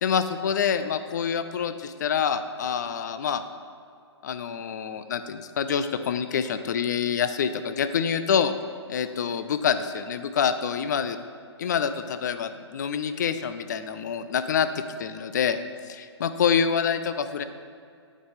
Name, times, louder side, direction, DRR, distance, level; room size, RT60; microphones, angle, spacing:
voice 1, 0.0-3.4 4.2-8.5 8.9-11.2 11.6-14.7 15.0-15.6 15.9-17.4, left 7 dB, 40° left, 11 dB, 0.3 m, -26 dB
9.0 x 3.9 x 3.6 m, 2.4 s
figure-of-eight pair, 130°, 15 cm